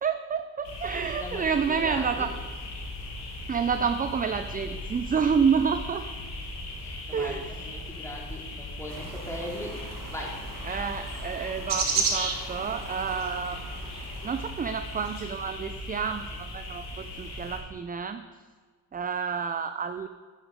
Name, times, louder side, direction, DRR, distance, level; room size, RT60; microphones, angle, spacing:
voice 1, 0.0-2.3 3.5-6.0 7.1-7.5 10.6-13.8 14.2-18.2 18.9-20.1, right 6 dB, 20° right, 9 dB, 0.4 m, -29 dB
sound 1, 0.6-17.6, left 1 dB, 70° left, 2.0 m, -38 dB
voice 2, 1.1-2.3 6.8-9.8 10.1-10.5, left 1 dB, 5° left, -2 dB, 2.7 m, -39 dB
sound 2, 8.9-15.1, right 4 dB, 50° right, 1.5 m, -34 dB
9.6 x 8.3 x 3.7 m, 1.5 s
supercardioid pair, 45°, 40 cm